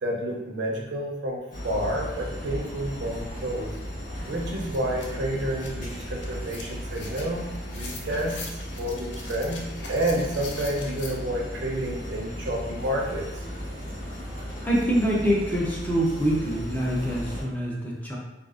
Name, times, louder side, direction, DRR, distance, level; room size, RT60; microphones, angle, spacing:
voice 1, 0.0-3.7 4.3-8.4 8.7-13.3, right 1 dB, 75° right, 0 dB, 0.6 m, -30 dB
sound 1, 1.5-17.4, equal, 50° left, 1.2 m, -36 dB
sound 2, 3.8-3.9 4.2-11.1, left 3 dB, 75° left, 0.5 m, -43 dB
voice 2, 14.6-18.2, equal, 10° left, -4 dB, 0.5 m, -25 dB
3.6 x 2.4 x 2.4 m, 0.95 s
head